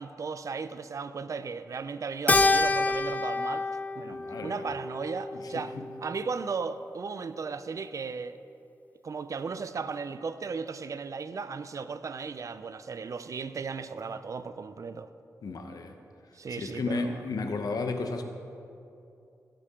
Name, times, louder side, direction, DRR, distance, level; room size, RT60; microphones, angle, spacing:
voice 1, 0.0-3.7 4.0-5.7 6.0-8.4 9.0-15.1 16.3-17.2, right 5 dB, 55° right, 12 dB, 0.5 m, -36 dB
Keyboard (musical), 2.3-6.9, left 3 dB, 25° left, 0.5 m, -28 dB
voice 2, 4.1-4.7 5.3-5.9 15.4-15.9 16.5-18.2, left 3 dB, 70° left, 5 dB, 1.0 m, -34 dB
16.0 x 7.0 x 3.7 m, 2.7 s
cardioid pair, 65°, 7 cm